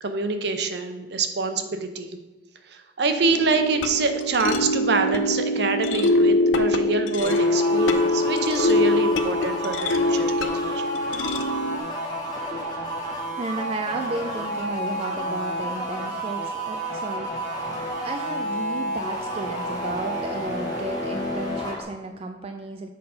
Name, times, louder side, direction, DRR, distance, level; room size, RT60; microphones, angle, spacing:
voice 1, 0.0-2.2 2.7-10.8, right 3 dB, 60° right, 8 dB, 0.7 m, -26 dB
sound 1, 3.3-11.8, left 2 dB, 85° left, 0.5 m, -23 dB
sound 2, 7.2-21.8, right 1 dB, 20° left, 1.3 m, -30 dB
voice 2, 13.4-17.6 18.0-22.9, right 2 dB, 30° right, 5 dB, 0.4 m, -33 dB
7.6 x 4.1 x 5.5 m, 1.2 s
head